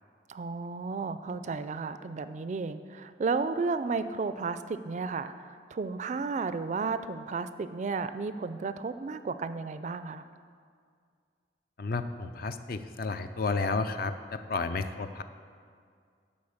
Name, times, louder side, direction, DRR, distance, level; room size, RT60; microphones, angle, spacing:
voice 1, 0.3-10.2, right 4 dB, 40° right, 12 dB, 0.3 m, -33 dB
voice 2, 11.8-15.2, left 3 dB, 55° left, 9 dB, 0.5 m, -32 dB
11.5 x 4.1 x 7.1 m, 2.1 s
head